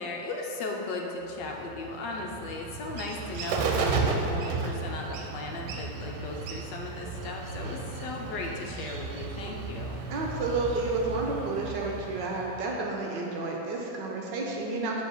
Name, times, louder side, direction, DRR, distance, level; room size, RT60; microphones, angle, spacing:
voice 1, 0.0-10.0, left 3 dB, 70° left, 1 dB, 1.3 m, -37 dB
Bird, 1.4-12.9, right 4 dB, 85° right, 1.5 m, -34 dB
voice 2, 10.1-15.0, right 3 dB, 70° right, -1 dB, 1.3 m, -31 dB
7.4 x 3.3 x 6.2 m, 3.0 s
omnidirectional pair, 2.2 m